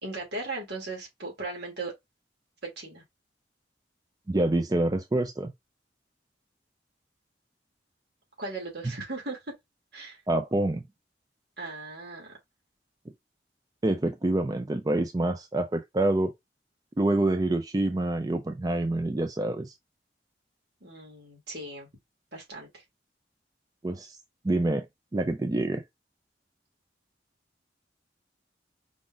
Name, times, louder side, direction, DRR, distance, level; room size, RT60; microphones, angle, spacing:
voice 1, 0.0-1.9 2.6-3.0 8.4-9.4 9.9-10.2 11.6-12.3 20.8-21.9 22.3-22.8, right 2 dB, 70° right, 2.4 m, -37 dB
voice 2, 4.3-5.5 10.3-10.8 13.8-16.3 17.0-19.7 23.8-24.2 24.4-24.9 25.1-25.8, right 2 dB, 20° right, 0.4 m, -26 dB
5.0 x 2.4 x 3.8 m
head